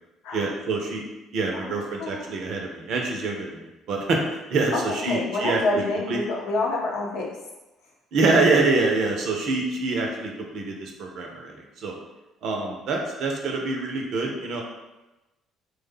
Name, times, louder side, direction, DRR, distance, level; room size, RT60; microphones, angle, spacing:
voice 1, 0.3-1.0 1.3-5.8 6.1-6.2 8.1-12.0 12.4-14.6, right 3 dB, 55° right, 1 dB, 0.6 m, -25 dB
voice 2, 1.5-2.4 5.0-7.4, left 2 dB, 65° left, -3 dB, 0.8 m, -28 dB
3.2 x 2.2 x 3.4 m, 1.0 s
figure-of-eight pair, 50°, 0 cm